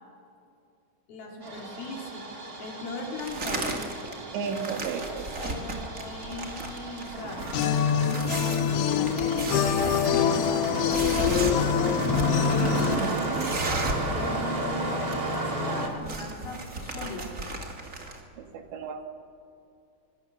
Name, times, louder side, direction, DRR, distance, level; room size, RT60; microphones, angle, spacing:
voice 1, 1.1-2.2 2.6-3.8 5.4-7.4 8.0-12.0 12.5-13.2 14.1-17.5, left 2 dB, 55° left, 0 dB, 4.8 m, -38 dB
Engine starting, 1.4-15.9, right 1 dB, 30° right, 1.8 m, -33 dB
sound 1, 3.2-4.1 4.4-14.1 14.4-14.5 14.7-15.4 15.7-18.2, right 2 dB, 50° right, 0.9 m, -35 dB
voice 2, 4.3-5.8 13.0-13.5 18.4-19.1, right 6 dB, 75° right, 6 dB, 3.7 m, -35 dB
sound 2, 7.5-13.0, left 9 dB, 85° left, 3.4 m, -25 dB
26.0 x 23.5 x 6.9 m, 2.5 s
omnidirectional pair, 5.3 m